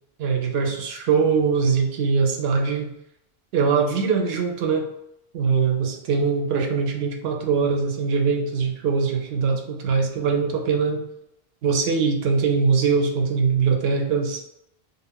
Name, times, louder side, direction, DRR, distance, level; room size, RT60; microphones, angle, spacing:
voice 1, 0.2-2.9 3.5-4.9 5.3-11.1 11.6-14.4, right 5 dB, 75° right, 2 dB, 0.8 m, -22 dB
2.5 x 2.1 x 3.4 m, 0.80 s
omnidirectional pair, 1.0 m